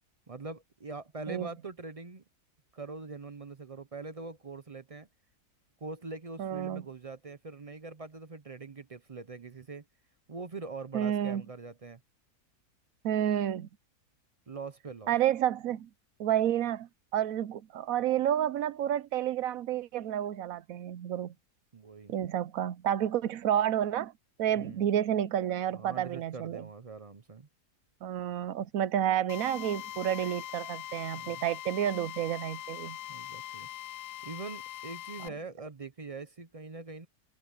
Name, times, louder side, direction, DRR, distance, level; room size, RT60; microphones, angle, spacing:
voice 1, 0.3-2.2 2.7-5.1 5.8-9.8 10.3-12.0 14.5-15.1 21.7-22.1 24.5-24.9 25.7-27.5 31.1-31.4 33.1-33.7 34.2-37.1, right 3 dB, 40° right, 0.5 m, -43 dB
voice 2, 6.4-6.8 10.9-11.4 13.0-13.7 15.1-15.9 16.2-21.3 22.1-24.1 24.4-26.7 28.0-33.0, right 10 dB, 70° right, 1.0 m, -30 dB
Drill, 29.3-35.3, left 13 dB, 90° left, 1.1 m, -42 dB
omnidirectional pair, 1.6 m